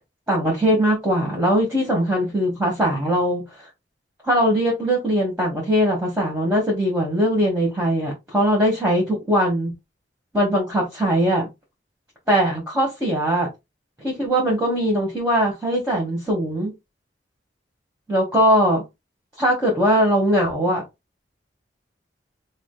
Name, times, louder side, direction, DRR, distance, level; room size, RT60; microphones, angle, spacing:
voice 1, 0.3-3.4 4.2-9.7 10.3-11.5 12.3-13.5 14.0-16.7 18.1-18.8 19.4-20.8, equal, 10° right, 1.5 m, -20 dB
4.9 x 2.0 x 3.9 m
head